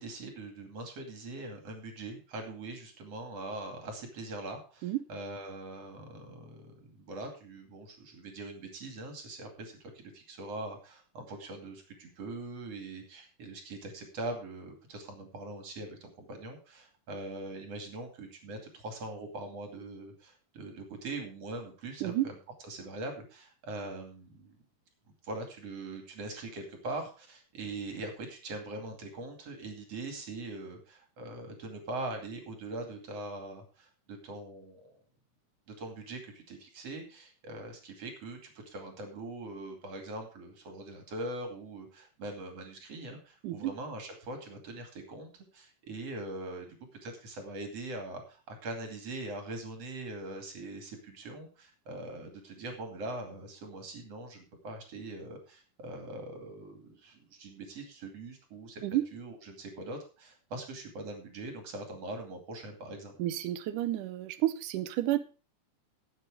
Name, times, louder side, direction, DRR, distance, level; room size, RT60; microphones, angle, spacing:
voice 1, 0.0-22.4 22.6-24.6 25.2-34.9 35.7-38.4 38.7-58.8 59.1-63.1, right 2 dB, 50° right, 4 dB, 3.5 m, -42 dB
voice 2, 22.0-22.3 43.4-43.7 58.8-59.1 63.2-65.2, right 14 dB, 75° right, 12 dB, 2.3 m, -30 dB
12.0 x 8.3 x 4.9 m, 0.34 s
omnidirectional pair, 3.8 m